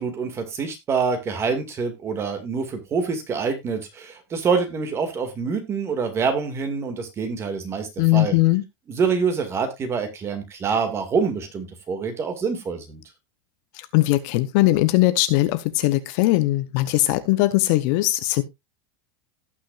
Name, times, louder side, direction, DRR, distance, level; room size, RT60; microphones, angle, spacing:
voice 1, 0.0-8.4 8.9-13.0, right 5 dB, 20° right, 2.1 m, -26 dB
voice 2, 8.0-8.6 13.7-18.4, left 18 dB, 45° left, 0.8 m, -20 dB
17.5 x 6.1 x 2.5 m
supercardioid pair, 165°, 14 cm